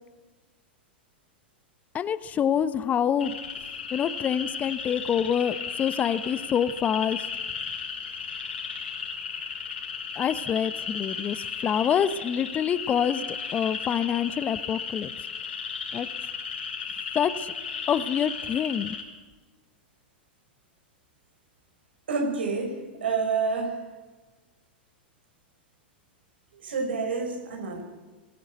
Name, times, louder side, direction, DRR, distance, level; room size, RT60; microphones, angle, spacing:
voice 1, 1.9-3.4 3.9-7.2 10.2-15.1 15.9-16.1 17.1-17.5 17.9-19.0, left 8 dB, 25° left, 15 dB, 0.9 m, -26 dB
sound 1, 3.2-19.0, left 6 dB, 75° left, 5.2 m, -35 dB
voice 2, 22.1-23.8 26.6-27.8, right 4 dB, 75° right, 3 dB, 5.8 m, -28 dB
22.5 x 16.0 x 8.0 m, 1.3 s
hypercardioid pair, 100°, 6 cm